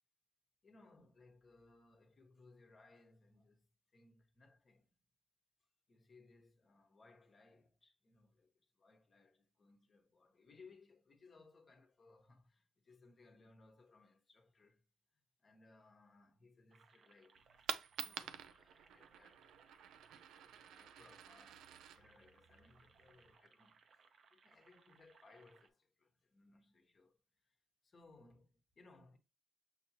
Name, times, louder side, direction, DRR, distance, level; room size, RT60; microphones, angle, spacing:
voice 1, 0.6-4.9 5.9-14.8 15.4-17.4 18.0-19.9 20.3-21.7 21.9-27.6 27.8-29.2, left 3 dB, 40° left, 1.1 m, -65 dB
sound 1, 16.7-25.7, right 5 dB, 55° right, 0.7 m, -69 dB
Coin (dropping), 17.3-23.3, right 9 dB, 85° right, 0.4 m, -49 dB
6.4 x 2.8 x 2.8 m
cardioid pair, 90°, 0 cm